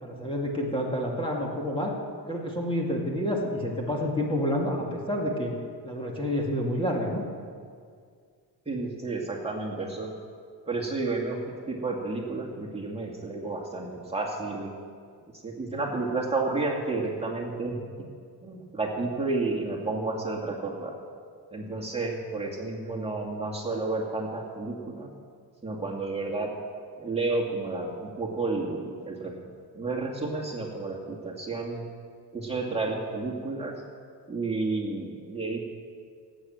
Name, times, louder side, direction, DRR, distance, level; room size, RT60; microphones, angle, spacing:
voice 1, 0.0-1.9 2.3-5.5 5.8-7.2, equal, 15° left, -2 dB, 2.2 m, -29 dB
voice 2, 8.7-10.1 10.7-11.4 11.7-14.7 15.4-17.8 18.4-20.9 21.5-25.1 25.6-26.5 27.0-29.3 29.7-31.9 32.3-33.8 34.3-35.6, right 3 dB, 15° right, -3 dB, 2.2 m, -31 dB
18.0 x 8.9 x 7.7 m, 2.1 s
cardioid pair, 130°, 40 cm